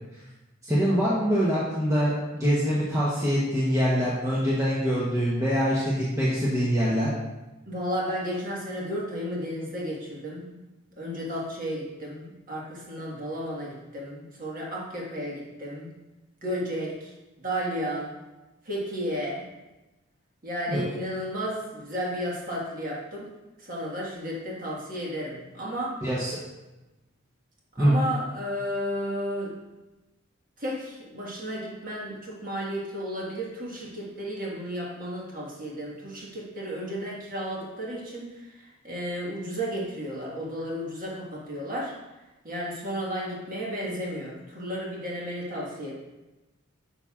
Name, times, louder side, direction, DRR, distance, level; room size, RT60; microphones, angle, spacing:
voice 1, 0.6-7.1 20.7-20.8 26.0-26.4 27.8-28.0, equal, 15° right, -7 dB, 0.9 m, -24 dB
voice 2, 7.7-10.6 11.0-15.9 16.4-17.1 17.4-18.1 18.6-19.4 20.4-23.3 23.6-25.9 27.7-29.6 30.6-41.9 42.4-45.9, equal, 40° right, -4 dB, 1.5 m, -33 dB
8.8 x 5.6 x 2.4 m, 1.1 s
head